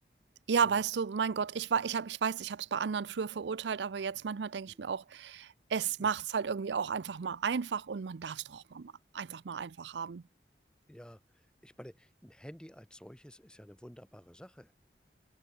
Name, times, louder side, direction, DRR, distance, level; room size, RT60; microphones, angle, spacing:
voice 1, 0.5-10.2, right 6 dB, 90° right, 0.5 m, -33 dB
voice 2, 10.9-14.7, equal, 5° left, 1.1 m, -51 dB
head